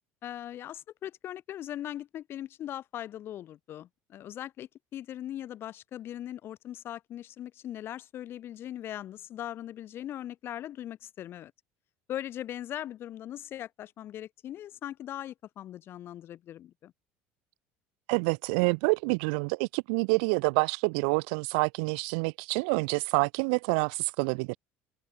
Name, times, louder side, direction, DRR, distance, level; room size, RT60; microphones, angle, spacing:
voice 1, 0.2-11.5 12.1-16.9, left 12 dB, 50° left, 1.4 m, -40 dB
voice 2, 18.1-24.6, right 36 dB, 85° right, 0.5 m, -27 dB
open air
cardioid pair, 125°, 5 cm